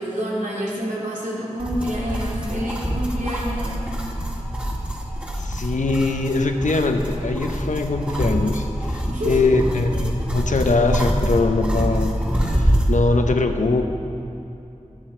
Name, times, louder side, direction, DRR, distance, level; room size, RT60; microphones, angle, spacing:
voice 1, 0.0-3.9 9.1-9.6, equal, 85° right, -6 dB, 3.0 m, -28 dB
sound 1, 1.6-13.0, equal, 10° right, 1.7 m, -25 dB
voice 2, 5.4-13.8, left 3 dB, 85° left, 5 dB, 0.8 m, -22 dB
13.5 x 10.0 x 4.4 m, 2.8 s
wide cardioid pair, 45°, 13 cm